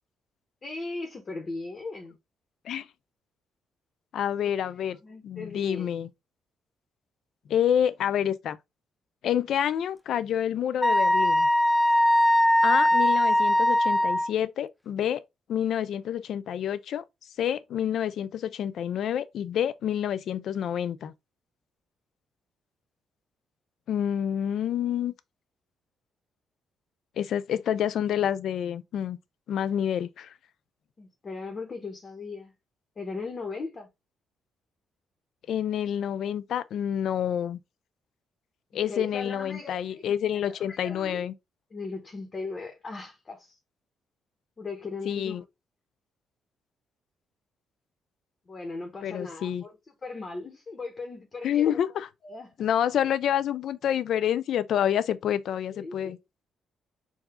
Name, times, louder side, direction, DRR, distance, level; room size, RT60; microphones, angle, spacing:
voice 1, 0.6-2.1 4.4-4.5 5.0-5.9 31.0-32.5 33.0-33.9 38.7-40.0 40.5-41.3 41.7-43.6 44.6-45.4 48.5-49.7 50.0-51.8 52.2-52.5 55.7-56.2, left 3 dB, 35° left, 1.3 m, -38 dB
voice 2, 4.1-5.0 5.2-6.1 7.5-8.6 9.2-11.5 12.6-15.2 15.5-17.0 17.4-21.1 23.9-25.1 27.2-29.2 29.5-30.3 35.5-37.6 38.7-41.3 45.0-45.4 49.0-49.6 51.4-52.1 52.6-56.2, left 9 dB, 70° left, 0.5 m, -28 dB
Wind instrument woodwind instrument, 10.8-14.3, left 1 dB, 5° left, 0.3 m, -21 dB
4.8 x 2.7 x 3.7 m
cardioid pair, 90°, 0 cm